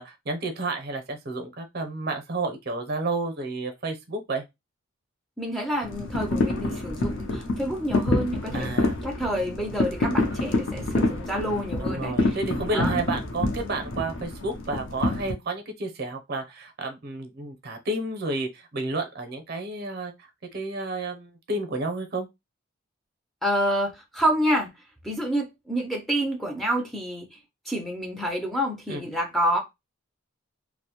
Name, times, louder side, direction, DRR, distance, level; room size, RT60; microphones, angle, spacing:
voice 1, 0.0-4.4 8.5-9.0 11.8-20.1 20.5-22.3 28.9-29.0, right 2 dB, 50° right, 0.6 m, -31 dB
voice 2, 5.4-8.7 9.0-12.4 12.7-13.0 23.4-24.7 25.0-27.4 27.7-29.6, equal, ahead, 0.4 m, -28 dB
sound 1, 5.8-15.3, left 2 dB, 60° left, 0.5 m, -27 dB
2.5 x 2.0 x 2.8 m
head